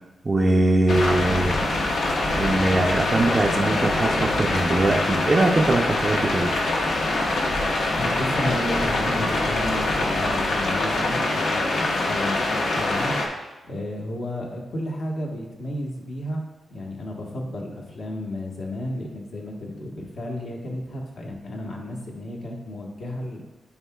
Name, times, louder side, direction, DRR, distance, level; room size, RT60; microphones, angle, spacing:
voice 1, 0.2-1.6 2.3-6.6, right 2 dB, 25° right, -1 dB, 0.5 m, -22 dB
sound 1, 0.9-13.3, left 2 dB, 85° left, 1.0 m, -24 dB
voice 2, 7.7-13.1 13.6-16.4 16.7-23.5, left 1 dB, 65° left, -1 dB, 1.2 m, -32 dB
11.0 x 4.7 x 2.3 m, 1.1 s
wide cardioid pair, 145°, 0 cm